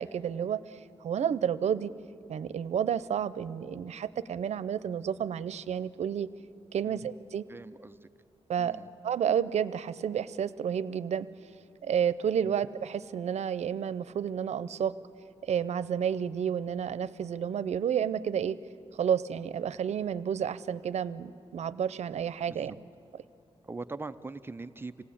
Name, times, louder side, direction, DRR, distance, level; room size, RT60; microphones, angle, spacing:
voice 1, 0.0-1.9 2.3-6.3 6.7-7.4 8.5-11.3 11.8-14.9 15.4-18.6 18.9-22.7, right 8 dB, 85° right, 15 dB, 0.6 m, -31 dB
voice 2, 7.5-8.1 8.6-8.9 12.4-12.6 22.5-22.8 23.6-25.1, right 3 dB, 20° right, 11 dB, 0.5 m, -42 dB
26.5 x 18.0 x 8.6 m, 2.9 s
wide cardioid pair, 165°, 11 cm